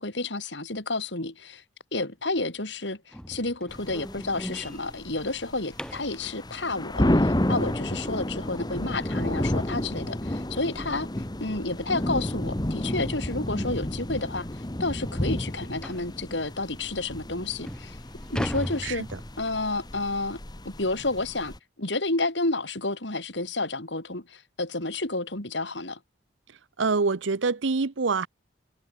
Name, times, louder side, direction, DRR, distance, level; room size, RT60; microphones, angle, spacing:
voice 1, 0.0-1.6 1.9-14.5 14.8-18.0 18.3-19.1 19.4-20.4 20.6-26.0, left 2 dB, 70° left, 4.2 m, -30 dB
sound 1, 3.1-6.2 9.0-9.1 9.6-9.8 10.1-10.2 10.7-10.8 11.9-12.1 12.5-12.6 13.3-13.4 13.7-13.8 14.3-14.4 15.8-16.1 16.9-17.0 17.4-19.7, equal, 5° left, 1.9 m, -37 dB
sound 2, 3.7-21.6, left 1 dB, 20° left, 1.3 m, -31 dB
voice 2, 26.8-28.3, right 4 dB, 85° right, 0.8 m, -25 dB
head